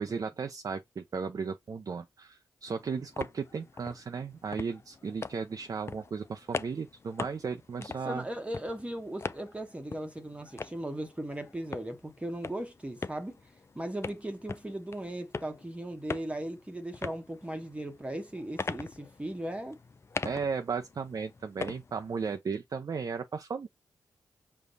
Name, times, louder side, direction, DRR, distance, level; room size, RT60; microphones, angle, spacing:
voice 1, 0.0-8.2 20.2-23.7, right 5 dB, 55° right, 0.6 m, -35 dB
sound 1, 2.7-22.4, left 4 dB, 35° left, 0.4 m, -43 dB
voice 2, 7.8-13.4 13.7-19.8, right 1 dB, 15° right, 1.0 m, -38 dB
5.2 x 2.2 x 3.9 m
cardioid pair, 50°, 7 cm